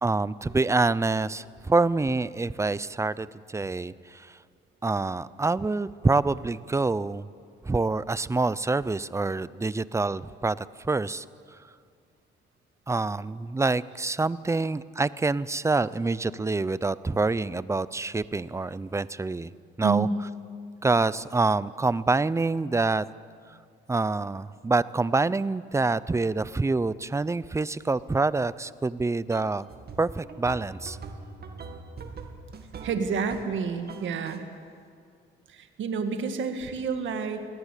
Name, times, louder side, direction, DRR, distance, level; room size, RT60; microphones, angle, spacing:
voice 1, 0.0-4.4 4.8-7.3 7.6-11.2 12.9-19.5 19.8-20.1 20.8-23.0 23.9-29.7 30.0-31.0, right 3 dB, 15° right, 18 dB, 0.6 m, -26 dB
voice 2, 19.8-20.1 32.8-34.4 35.5-37.5, right 5 dB, 75° right, 7 dB, 1.9 m, -29 dB
sound 1, 29.3-33.6 33.9-34.4, right 4 dB, 55° right, 2.3 m, -42 dB
21.5 x 18.0 x 8.3 m, 2.2 s
cardioid pair, 90°, 20 cm